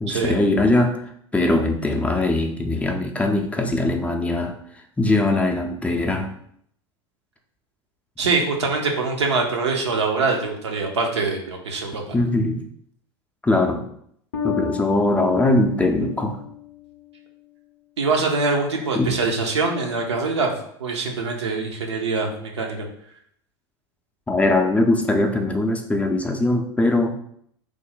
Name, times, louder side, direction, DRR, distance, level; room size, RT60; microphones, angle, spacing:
voice 1, 0.0-1.0 1.3-4.5 5.0-6.3 12.1-12.6 13.4-13.8 14.4-16.4 18.9-19.1 24.3-27.1, left 2 dB, 10° left, 3 dB, 0.4 m, -21 dB
voice 2, 8.2-12.2 18.0-20.5 20.8-22.9, right 4 dB, 85° right, 1 dB, 0.6 m, -24 dB
Bass guitar, 14.3-17.4, left 8 dB, 75° left, 0.5 m, -32 dB
3.1 x 2.1 x 3.8 m, 0.68 s
hypercardioid pair, 85°, 14 cm